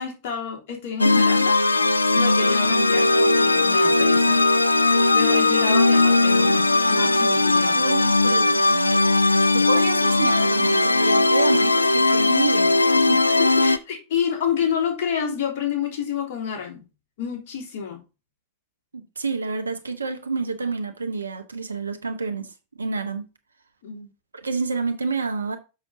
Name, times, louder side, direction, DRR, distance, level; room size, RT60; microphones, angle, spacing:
voice 1, 0.0-1.6 2.1-4.4 5.1-7.8 13.4-16.8 17.2-18.0 23.8-24.1, left 7 dB, 50° left, 3.2 m, -29 dB
sound 1, 1.0-13.8, left 2 dB, 85° left, 0.4 m, -18 dB
voice 2, 7.7-9.0 9.3-13.2 19.2-22.5 22.8-23.2 24.3-25.6, right 4 dB, 75° right, 1.2 m, -28 dB
7.1 x 6.3 x 4.0 m
figure-of-eight pair, 90°, 0 cm